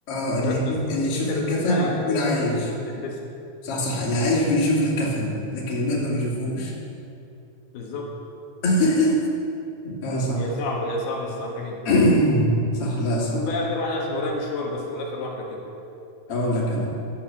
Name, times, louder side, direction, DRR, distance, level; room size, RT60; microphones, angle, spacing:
voice 1, 0.1-2.6 3.6-6.7 8.6-9.2 9.8-10.4 11.9-12.5 12.8-13.4 16.3-16.9, left 1 dB, 40° left, -5 dB, 3.3 m, -23 dB
voice 2, 1.2-2.3 2.6-3.2 7.7-8.1 10.4-11.8 13.3-15.6, left 2 dB, 80° left, -2 dB, 3.4 m, -29 dB
12.0 x 9.6 x 7.1 m, 2.7 s
omnidirectional pair, 4.4 m